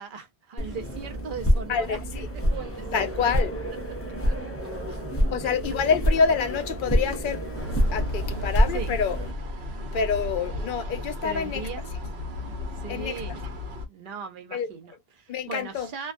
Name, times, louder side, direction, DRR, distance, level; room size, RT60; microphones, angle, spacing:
voice 1, 0.0-2.0 2.5-3.1 4.2-5.0 5.3-5.4 8.7-8.9 11.2-11.9 12.7-13.4 13.9-16.1, right 6 dB, 60° right, 0.7 m, -38 dB
sound 1, 0.6-9.3, equal, 20° left, 0.4 m, -27 dB
voice 2, 1.7-2.3 2.9-3.7 5.3-9.2 9.9-11.6 12.9-13.2 14.5-14.7 15.3-15.9, left 6 dB, 60° left, 0.6 m, -27 dB
sound 2, 7.5-13.9, left 1 dB, 90° right, 1.0 m, -34 dB
2.2 x 2.2 x 2.4 m
omnidirectional pair, 1.0 m